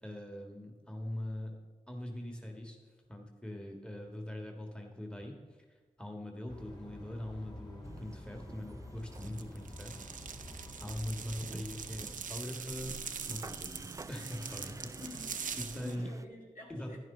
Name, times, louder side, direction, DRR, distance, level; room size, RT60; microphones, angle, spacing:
voice 1, 0.0-1.6 1.9-2.8 3.1-5.3 6.0-10.0 10.8-13.0 13.3-15.0 15.6-16.1 16.7-17.0, left 1 dB, 5° left, 2 dB, 1.6 m, -42 dB
sound 1, 6.5-12.1, left 1 dB, 30° left, 2.2 m, -49 dB
sound 2, 7.8-16.2, right 3 dB, 25° right, 0.4 m, -51 dB
sound 3, 9.1-16.0, right 6 dB, 70° right, 0.6 m, -43 dB
voice 2, 14.9-15.4 15.7-17.0, left 2 dB, 70° left, -3 dB, 2.4 m, -49 dB
11.0 x 10.5 x 3.8 m, 1.3 s
cardioid pair, 50°, 14 cm